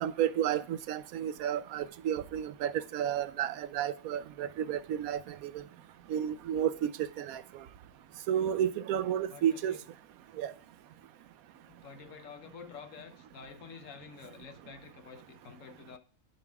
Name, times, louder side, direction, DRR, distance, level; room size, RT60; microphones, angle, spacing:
voice 1, 0.0-5.6 6.1-6.9 7.2-7.4 8.3-9.8 10.4-10.5, right 10 dB, 80° right, 1.1 m, -31 dB
voice 2, 9.3-9.8 11.6-16.0, left 6 dB, 65° left, 1.2 m, -49 dB
10.5 x 5.5 x 3.5 m
omnidirectional pair, 1.5 m